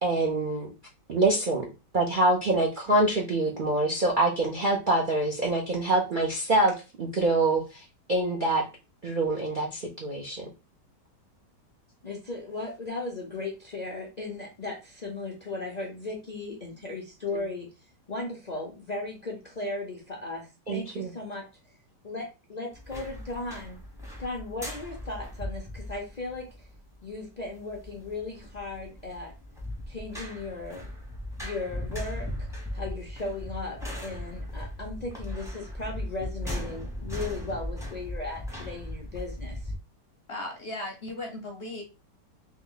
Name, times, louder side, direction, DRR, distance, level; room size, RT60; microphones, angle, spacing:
voice 1, 0.0-0.7 1.1-1.6 1.9-8.6 9.0-10.5 20.7-21.1, right 2 dB, 55° right, -1 dB, 0.5 m, -25 dB
voice 2, 12.0-17.7 18.1-21.5 22.0-23.8 24.2-26.7 27.0-29.3 29.9-30.9 31.4-32.5 32.7-39.7, left 3 dB, 70° left, 0 dB, 0.4 m, -36 dB
sound 1, 22.7-39.8, left 1 dB, 5° right, 0.7 m, -38 dB
voice 3, 40.3-41.8, left 1 dB, 50° left, 2 dB, 0.7 m, -36 dB
3.1 x 3.1 x 3.8 m, 0.29 s
omnidirectional pair, 1.9 m